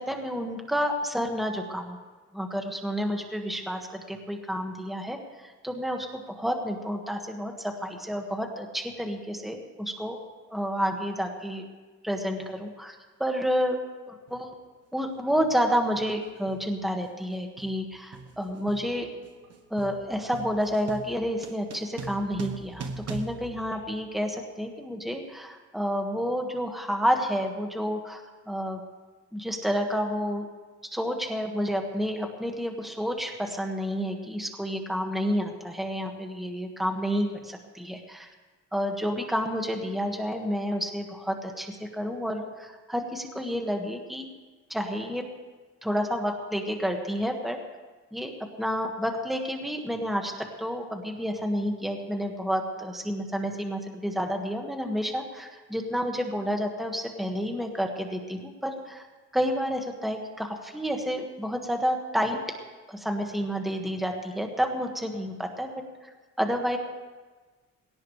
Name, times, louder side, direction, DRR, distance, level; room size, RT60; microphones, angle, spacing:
voice 1, 0.0-2.0 2.3-10.2 10.5-11.6 12.0-13.8 14.1-14.5 14.9-19.1 19.7-28.8 29.3-30.5 30.9-38.3 38.7-44.3 44.7-45.3 45.8-47.6 48.1-48.3 48.6-59.0 59.3-62.4 62.9-65.7 66.0-66.1 66.4-66.8, equal, ahead, 2 dB, 1.9 m, -30 dB
sound 1, 14.3-14.5 15.4-15.6 15.9-24.5, right 4 dB, 55° right, 1.3 m, -42 dB
Telephone, 17.9-18.1 18.5-19.5 20.1-20.2 20.6-20.7 21.2-22.3 23.5-24.1, right 4 dB, 75° right, 6.8 m, -59 dB
21.5 x 18.0 x 3.4 m, 1.3 s
cardioid pair, 90°, 30 cm